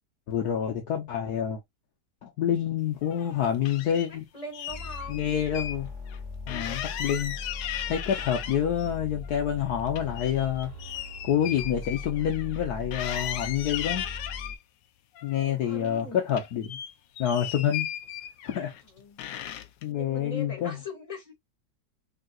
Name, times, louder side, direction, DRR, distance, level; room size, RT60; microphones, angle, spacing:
voice 1, 0.3-1.6 2.2-4.3 5.1-5.9 6.5-7.3 7.9-10.7 11.2-14.0 15.2-16.8 17.2-17.9 18.4-18.7 19.8-20.8, left 9 dB, 65° left, 1.3 m, -27 dB
sound 1, 3.0-4.1 4.5-5.8 6.1-6.2 6.5-8.9 9.2-12.6 12.9-14.6 15.2-16.0 16.3-18.8 19.2-19.8, left 10 dB, 85° left, 1.2 m, -37 dB
voice 2, 4.3-5.3 15.4-16.2 18.8-19.2 19.9-21.3, left 2 dB, 20° left, 1.9 m, -41 dB
sound 2, 4.7-14.5, left 3 dB, 25° right, 2.1 m, -40 dB
4.0 x 3.9 x 2.3 m
omnidirectional pair, 1.9 m